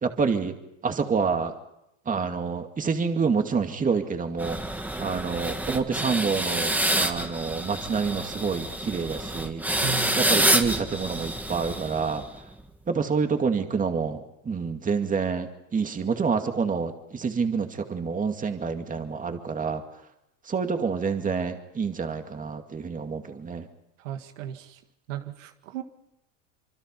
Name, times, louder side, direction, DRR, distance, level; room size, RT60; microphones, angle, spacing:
voice 1, 0.0-0.5 0.8-1.5 2.1-9.6 10.2-12.2 12.9-19.8 20.5-23.7, right 5 dB, 20° right, 5 dB, 2.3 m, -27 dB
sound 1, 4.4-12.4, right 1 dB, 5° right, 1.7 m, -27 dB
voice 2, 9.8-10.2 24.0-24.8 25.1-25.8, right 7 dB, 85° right, 7 dB, 1.9 m, -35 dB
26.0 x 24.0 x 5.5 m, 0.85 s
supercardioid pair, 110°, 38 cm